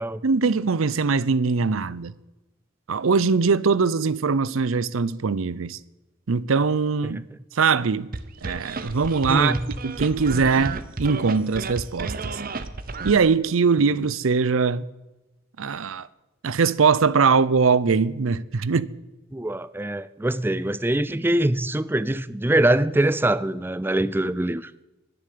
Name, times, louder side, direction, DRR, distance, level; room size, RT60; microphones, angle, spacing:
voice 1, 0.2-2.1 2.9-5.8 6.3-7.2 7.5-8.1 8.4-9.5 9.8-12.4 13.0-14.9 15.6-16.1 16.4-18.9, right 5 dB, 80° right, 0.6 m, -21 dB
sound 1, 8.1-13.2, right 3 dB, 45° right, 0.8 m, -32 dB
voice 2, 19.3-24.7, right 1 dB, 10° right, 0.4 m, -23 dB
11.0 x 10.0 x 8.5 m
head